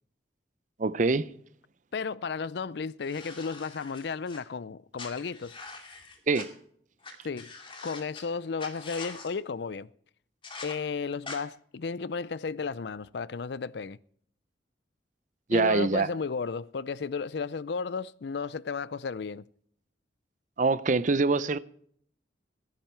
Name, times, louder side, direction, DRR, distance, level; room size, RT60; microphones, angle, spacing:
voice 1, 0.8-1.3 6.3-6.5 15.5-16.1 20.6-21.6, right 3 dB, 45° right, 0.6 m, -24 dB
voice 2, 1.9-5.6 7.2-7.5 7.8-9.9 10.6-14.0 15.5-19.4, left 5 dB, 65° left, 0.5 m, -33 dB
sound 1, 3.0-4.4 5.0-6.4 7.0-7.1 7.4-8.2 8.6-9.3 10.4-10.7 11.2-11.4, left 3 dB, 30° left, 2.5 m, -43 dB
18.0 x 10.5 x 4.5 m
head